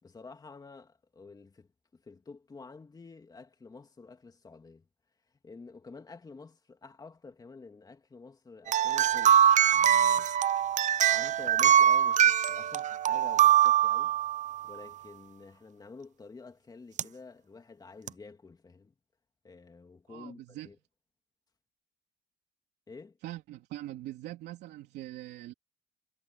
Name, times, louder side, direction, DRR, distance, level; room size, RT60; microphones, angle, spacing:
voice 1, 0.0-4.9 5.4-10.5 11.1-14.2 14.6-18.9 19.4-20.8 22.9-23.2, left 4 dB, 25° left, 2.9 m, -50 dB
sound 1, 8.7-14.6 17.0-17.1 18.1-18.2, right 9 dB, 45° right, 0.6 m, -23 dB
voice 2, 20.1-20.7 23.2-25.5, right 15 dB, 80° right, 3.4 m, -42 dB
cardioid pair, 110°, 17 cm